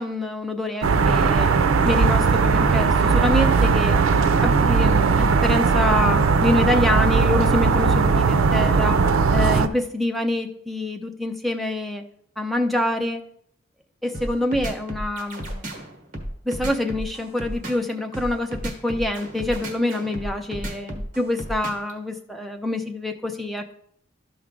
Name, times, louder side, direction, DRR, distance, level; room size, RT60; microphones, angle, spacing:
voice 1, 0.0-1.5 1.8-4.0 4.4-9.0 9.3-12.0 12.4-13.2 14.0-15.8 16.4-23.7, left 1 dB, ahead, 4 dB, 0.5 m, -26 dB
sound 1, 0.8-9.7, right 5 dB, 85° right, 0.4 m, -18 dB
sound 2, 14.1-21.9, right 1 dB, 40° right, 1.3 m, -32 dB
12.0 x 4.7 x 3.7 m, 0.69 s
head